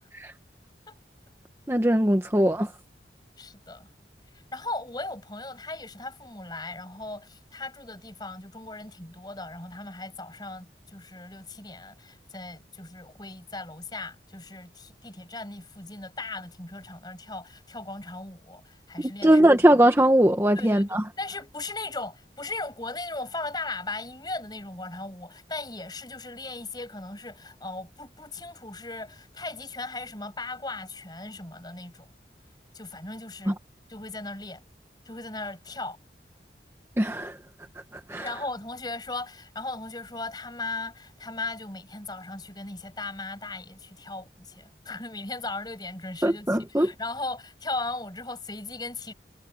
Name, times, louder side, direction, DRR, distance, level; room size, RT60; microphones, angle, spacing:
voice 1, 1.7-2.7 19.2-21.0 33.5-33.6 37.0-37.4 37.9-38.3 46.2-46.9, right 1 dB, 15° right, 1.0 m, -20 dB
voice 2, 3.4-3.9 4.5-19.8 20.6-32.1 32.7-33.6 33.9-34.6 35.1-36.0 38.2-49.1, left 2 dB, 25° left, 5.9 m, -37 dB
head